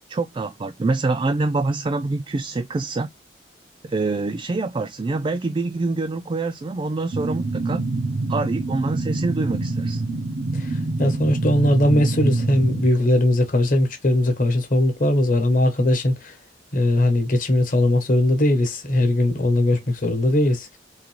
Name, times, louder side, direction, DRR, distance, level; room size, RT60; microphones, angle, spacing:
voice 1, 0.1-3.1 3.8-7.8 8.3-10.1, right 3 dB, 25° right, 0.3 m, -25 dB
sound 1, 7.1-12.9, right 2 dB, 75° right, 0.5 m, -25 dB
voice 2, 10.5-16.3 16.7-20.8, left 1 dB, 50° left, 1.0 m, -20 dB
3.8 x 2.7 x 3.0 m
head